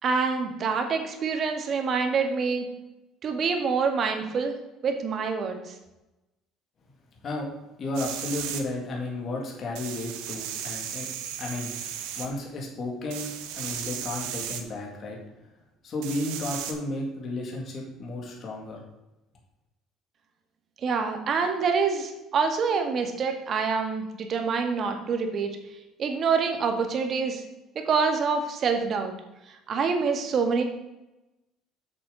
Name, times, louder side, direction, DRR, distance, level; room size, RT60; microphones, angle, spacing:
voice 1, 0.0-2.7 3.2-4.5 4.8-5.6 20.8-25.6 26.0-27.4 27.8-29.1 29.7-30.7, right 5 dB, 45° right, 5 dB, 1.6 m, -26 dB
voice 2, 7.8-11.1 11.4-11.8 12.2-15.2 15.8-18.8, left 2 dB, 45° left, -1 dB, 2.2 m, -33 dB
sound 1, 7.9-8.6 9.8-12.3 13.1-14.6 16.0-16.7, right 9 dB, 85° right, 1.1 m, -35 dB
8.2 x 6.8 x 4.0 m, 0.97 s
supercardioid pair, 100°, 0 cm